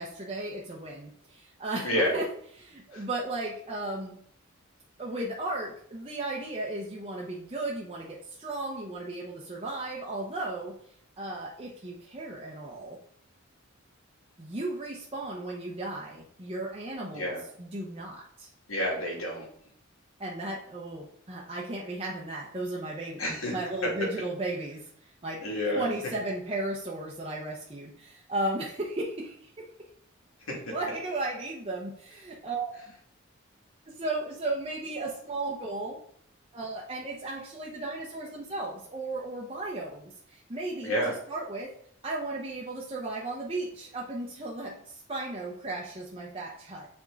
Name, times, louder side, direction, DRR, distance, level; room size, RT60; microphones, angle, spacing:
voice 1, 0.0-2.2 2.6-4.2 5.0-10.7 11.2-13.0 14.4-17.3 17.6-18.5 20.2-25.4 25.7-29.6 30.7-32.7 33.9-36.0 36.5-41.0 41.3-41.7 42.0-46.9, right 2 dB, 30° right, -3 dB, 0.8 m, -35 dB
voice 2, 1.8-2.2 2.9-3.0 17.1-17.4 18.7-19.5 23.2-23.5 25.4-25.9 30.5-30.6 40.8-41.2, equal, 85° left, -2 dB, 2.5 m, -29 dB
7.3 x 3.6 x 3.9 m, 0.62 s
head